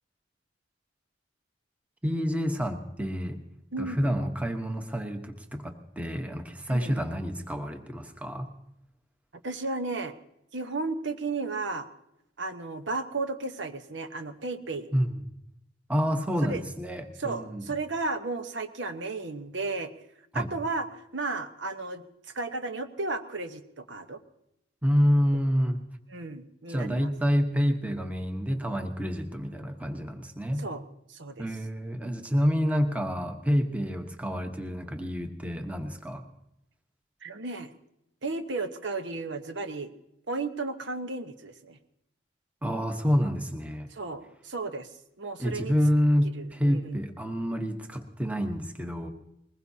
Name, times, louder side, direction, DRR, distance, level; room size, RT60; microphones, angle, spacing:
voice 1, 2.0-3.4 3.8-8.5 14.9-15.1 15.9-17.6 20.3-20.5 24.8-25.8 26.7-30.7 31.4-36.2 42.6-43.9 45.4-49.1, equal, 10° right, 5 dB, 1.0 m, -28 dB
voice 2, 3.7-4.2 6.7-7.0 9.4-10.1 10.5-11.9 12.4-14.9 16.4-16.6 17.2-19.9 20.3-22.0 22.3-24.2 26.1-27.1 30.6-30.8 31.1-31.4 37.2-37.7 38.2-39.9 40.3-41.8 43.9-44.9 45.2-45.7 46.3-47.0, right 3 dB, 75° right, 8 dB, 1.1 m, -34 dB
21.5 x 20.0 x 2.8 m, 0.82 s
head